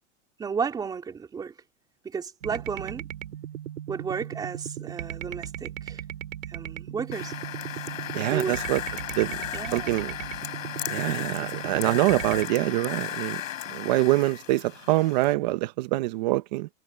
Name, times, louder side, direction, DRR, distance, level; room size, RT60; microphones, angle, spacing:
voice 1, 0.4-1.5 2.0-3.0 3.9-6.0 6.5-7.3 8.3-8.6 9.5-10.0, right 6 dB, 10° right, 4.0 m, -33 dB
sound 1, 2.4-12.5, right 12 dB, 90° right, 3.9 m, -37 dB
sound 2, 7.1-15.3, left 11 dB, 85° left, 5.5 m, -35 dB
voice 2, 8.1-8.8 9.2-9.4 9.7-10.1 10.9-13.4 13.7-16.7, right 18 dB, 35° right, 1.0 m, -25 dB
supercardioid pair, 175°, 38 cm